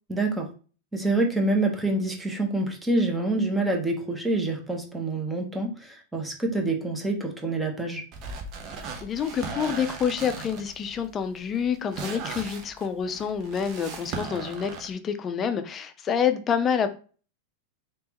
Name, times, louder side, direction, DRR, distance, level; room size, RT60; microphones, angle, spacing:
voice 1, 0.1-0.5 0.9-8.0, right 2 dB, 10° right, 0.9 m, -26 dB
sound 1, 8.1-14.9, right 4 dB, 45° right, 0.8 m, -38 dB
voice 2, 9.0-16.9, left 7 dB, 30° left, 0.5 m, -27 dB
3.4 x 2.9 x 2.9 m
hypercardioid pair, 100°, 0 cm